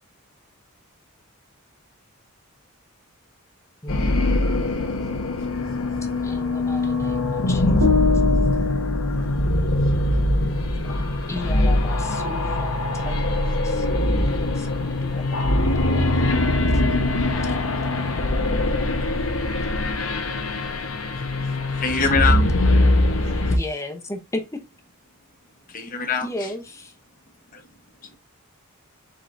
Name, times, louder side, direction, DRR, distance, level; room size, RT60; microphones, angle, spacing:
voice 1, 3.8-4.3 6.2-8.0 10.7-15.7 17.2-17.3 17.8-18.6 23.5-24.4 26.2-26.9, left 1 dB, 15° left, 0.7 m, -36 dB
sound 1, 3.9-23.6, left 1 dB, 70° left, 0.9 m, -22 dB
voice 2, 4.7-5.8 6.2-7.0 8.5-9.5 9.8-9.9 10.5-10.8 11.4-11.5 12.9-13.6 14.9-15.1 15.4-15.5 16.1-16.2 17.4-17.6 19.1-19.3 20.5-21.5 22.8-23.8, right 1 dB, 55° right, 1.8 m, -53 dB
sound 2, 7.8-10.0, left 5 dB, 80° right, 1.3 m, -25 dB
voice 3, 21.8-22.4 25.7-26.5 27.5-27.6, left 5 dB, 40° left, 0.9 m, -23 dB
4.9 x 4.1 x 2.5 m
head